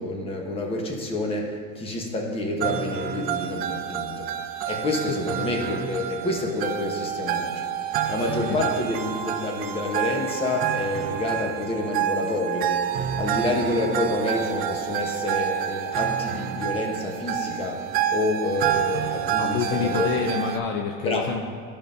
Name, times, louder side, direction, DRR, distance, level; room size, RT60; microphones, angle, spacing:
voice 1, 0.0-4.3 4.6-7.6 8.1-20.1 21.0-21.3, left 2 dB, 20° left, 1 dB, 0.9 m, -28 dB
sound 1, 2.6-20.6, right 10 dB, 30° right, 0.4 m, -28 dB
voice 2, 8.2-8.6 19.4-21.5, left 6 dB, 50° left, 3 dB, 0.5 m, -28 dB
12.5 x 5.2 x 2.6 m, 2.2 s
cardioid pair, 155°, 29 cm